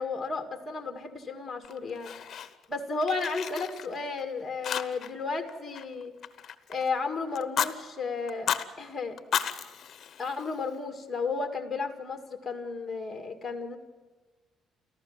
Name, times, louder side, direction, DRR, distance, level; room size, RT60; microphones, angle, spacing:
voice 1, 0.0-2.1 2.7-6.1 6.7-8.5 8.8-9.2 10.2-13.8, left 4 dB, 10° left, 5 dB, 2.0 m, -33 dB
Fire, 1.6-2.7 3.0-4.2 4.6-5.2 5.5-6.9 7.3-7.7 8.3-8.7 9.2-10.7, left 8 dB, 40° left, 1.0 m, -33 dB
30.0 x 14.5 x 7.3 m, 1.3 s
cardioid pair, 180°, 0 cm